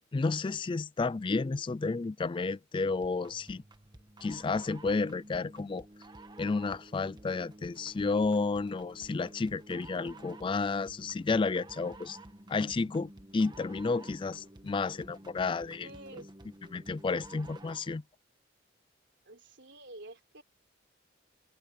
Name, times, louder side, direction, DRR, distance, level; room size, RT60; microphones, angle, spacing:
voice 1, 0.1-3.6 4.2-5.8 6.4-12.2 12.5-15.9 16.7-18.0, left 4 dB, 25° left, 0.3 m, -31 dB
sound 1, 3.0-18.0, right 1 dB, 25° right, 1.4 m, -52 dB
voice 2, 15.8-16.3 19.3-20.4, right 1 dB, 65° right, 3.9 m, -49 dB
head